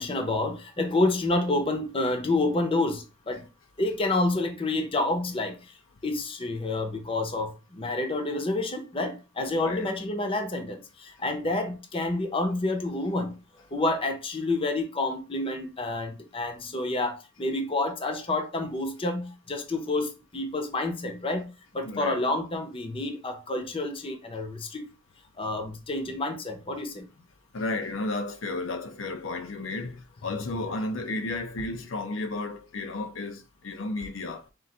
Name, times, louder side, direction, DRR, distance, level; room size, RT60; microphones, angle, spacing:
voice 1, 0.0-3.4 3.8-5.6 6.0-13.4 13.7-24.9 25.4-27.1, left 2 dB, 30° left, 0.7 m, -29 dB
voice 2, 9.5-9.9 21.8-22.2 27.5-34.5, left 2 dB, 90° left, 0.7 m, -33 dB
3.8 x 2.5 x 4.2 m
head